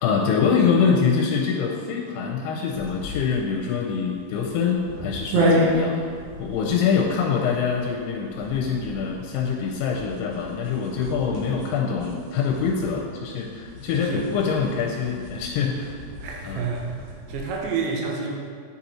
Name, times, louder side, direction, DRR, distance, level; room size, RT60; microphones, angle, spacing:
voice 1, 0.0-6.0 6.4-16.0 16.4-16.6, left 6 dB, 90° left, -2 dB, 3.0 m, -24 dB
sound 1, 2.7-17.6, equal, 55° right, 2.4 m, -31 dB
voice 2, 16.2-18.6, right 5 dB, 80° right, 0 dB, 3.0 m, -29 dB
9.7 x 4.2 x 4.3 m, 2.1 s
omnidirectional pair, 5.3 m